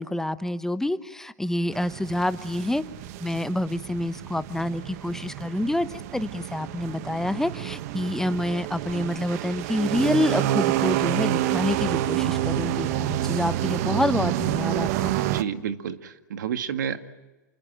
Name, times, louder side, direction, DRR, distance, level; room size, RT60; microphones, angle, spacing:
voice 1, 0.0-2.8 3.2-15.2, left 1 dB, 5° left, 13 dB, 0.9 m, -27 dB
sound 1, 1.7-15.4, right 13 dB, 55° right, 1.3 m, -28 dB
voice 2, 15.2-17.0, right 8 dB, 75° right, 9 dB, 2.0 m, -30 dB
28.5 x 21.0 x 9.1 m, 1.1 s
hypercardioid pair, 115°, 10 cm